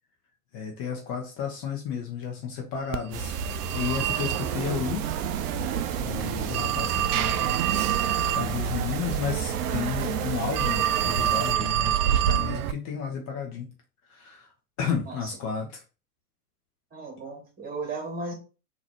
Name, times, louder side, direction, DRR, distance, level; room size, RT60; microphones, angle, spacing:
voice 1, 0.5-3.3 3.7-5.2 6.0-7.6 8.3-13.7 14.1-14.5 14.8-15.7, left 7 dB, 35° left, 2 dB, 1.0 m, -32 dB
Telephone, 2.9-12.7, right 11 dB, 65° right, 0.5 m, -27 dB
sound 1, 3.1-11.5, right 5 dB, 40° right, 0.8 m, -33 dB
voice 2, 15.1-15.4 16.9-18.3, right 3 dB, 20° right, 0 dB, 2.1 m, -36 dB
4.0 x 3.0 x 4.4 m, 0.34 s
hypercardioid pair, 100°, 47 cm